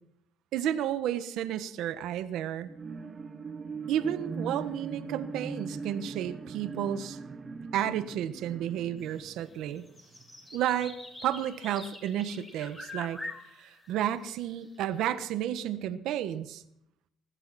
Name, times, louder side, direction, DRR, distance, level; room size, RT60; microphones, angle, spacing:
voice 1, 0.5-2.7 3.9-7.2 7.7-9.8 10.5-13.2 13.6-16.6, right 11 dB, 70° right, 11 dB, 1.3 m, -32 dB
sound 1, 2.6-10.4 10.8-10.9, right 4 dB, 30° right, 1.4 m, -40 dB
sound 2, 9.0-9.2 9.5-15.0, left 2 dB, 15° left, 6.6 m, -45 dB
20.0 x 14.5 x 4.3 m, 0.74 s
cardioid pair, 125°, 0 cm